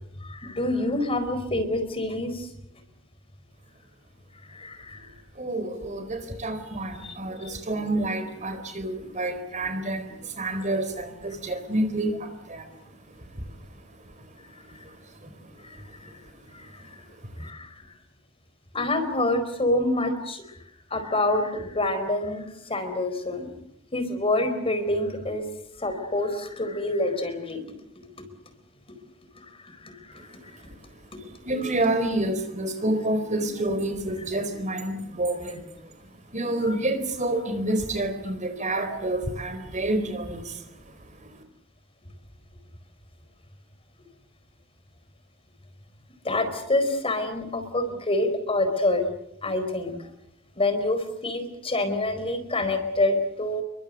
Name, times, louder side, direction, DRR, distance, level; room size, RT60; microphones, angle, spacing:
voice 1, 0.2-2.5 4.5-5.1 7.0-7.2 7.4-7.6 10.5-10.6 15.6-15.8 16.5-16.8 17.4-17.9 18.7-20.4 20.9-23.5 23.9-25.4 25.8-27.6 29.4-30.4 36.6-36.7 46.2-49.1 49.4-49.9 50.6-53.6, left 2 dB, 30° left, 9 dB, 4.4 m, -27 dB
voice 2, 5.3-12.7 14.7-15.4 30.6-30.7 31.4-35.6 36.3-40.6 41.2-41.4, right 1 dB, 40° right, 9 dB, 4.3 m, -28 dB
29.0 x 23.5 x 6.6 m, 0.77 s
head